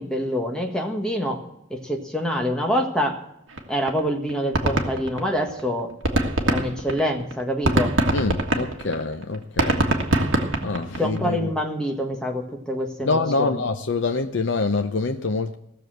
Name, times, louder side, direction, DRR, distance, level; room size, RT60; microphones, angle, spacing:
voice 1, 0.0-1.4 1.7-3.2 3.7-5.9 6.5-7.9 11.0-13.7, equal, 5° left, 1 dB, 1.5 m, -26 dB
sound 1, 3.6-3.7 3.9-4.0 4.3-5.6 5.9-11.2, right 1 dB, 70° right, 1.6 m, -23 dB
voice 2, 8.1-9.9 10.6-11.4 13.0-15.5, left 3 dB, 65° left, 6 dB, 0.6 m, -25 dB
17.0 x 6.9 x 7.8 m, 0.80 s
head